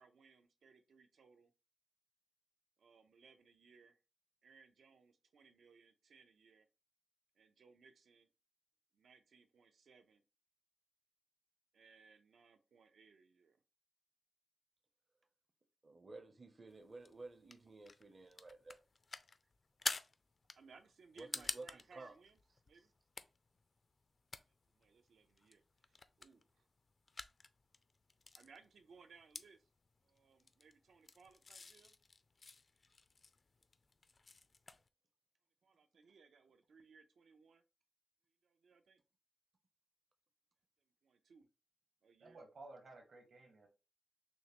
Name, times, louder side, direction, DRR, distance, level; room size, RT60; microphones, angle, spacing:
voice 1, 0.0-1.5 2.8-4.0 4.4-6.7 7.4-8.3 8.9-10.2 11.7-13.6 20.6-22.4 22.7-22.9 24.7-26.7 28.3-29.6 30.0-31.9 35.6-37.6 38.4-39.0 41.0-41.5 42.0-42.4, right 5 dB, 80° right, 0.6 m, -64 dB
voice 2, 15.8-18.8 21.2-22.1 22.7-22.9, right 3 dB, 35° right, 0.6 m, -53 dB
sound 1, 16.7-34.9, left 3 dB, 40° left, 0.3 m, -50 dB
voice 3, 42.2-43.7, right 2 dB, 60° right, 1.3 m, -56 dB
6.1 x 2.1 x 2.9 m
wide cardioid pair, 135°, 0 cm